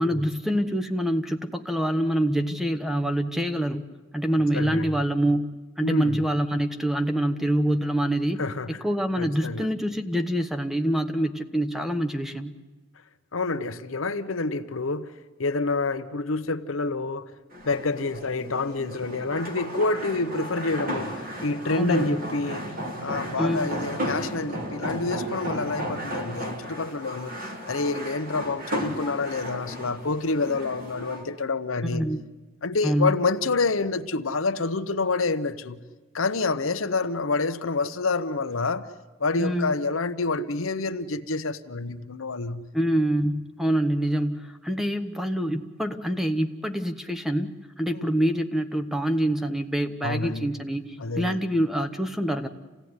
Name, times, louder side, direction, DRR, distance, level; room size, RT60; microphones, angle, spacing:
voice 1, 0.0-8.4 8.8-12.6 21.8-22.2 23.4-23.7 31.8-32.2 32.8-33.2 39.3-39.7 42.7-52.5, equal, ahead, 1.0 m, -26 dB
voice 2, 4.5-4.9 5.8-6.2 8.4-8.8 9.2-9.6 13.3-15.1 15.4-17.3 17.6-22.7 23.0-27.4 27.7-32.1 32.6-35.8 36.1-38.9 39.2-42.7 47.9-48.1 50.0-50.5 51.0-51.4, left 3 dB, 80° left, 0.9 m, -28 dB
sound 1, 17.5-31.2, equal, 45° right, 3.1 m, -34 dB
28.0 x 16.5 x 9.6 m
head